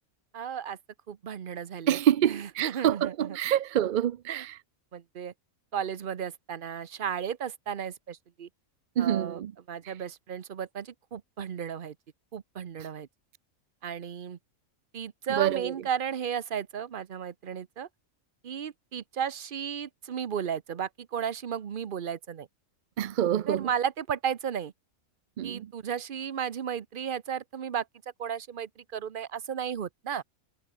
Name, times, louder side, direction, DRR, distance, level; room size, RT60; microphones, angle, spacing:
voice 1, 0.3-0.8 1.1-2.0 2.2-3.4 4.3-4.4 4.9-5.3 5.7-8.5 9.0-9.4 9.7-11.9 12.3-13.1 13.8-14.4 14.9-17.9 18.4-22.5 23.5-24.7 25.4-27.8 28.2-30.2, right 8 dB, 45° right, 0.8 m, -34 dB
voice 2, 1.9-4.6 9.0-9.5 9.8-9.9 15.3-15.7 23.0-23.7 25.4-25.7, right 11 dB, 75° right, 0.4 m, -27 dB
omnidirectional pair, 1.4 m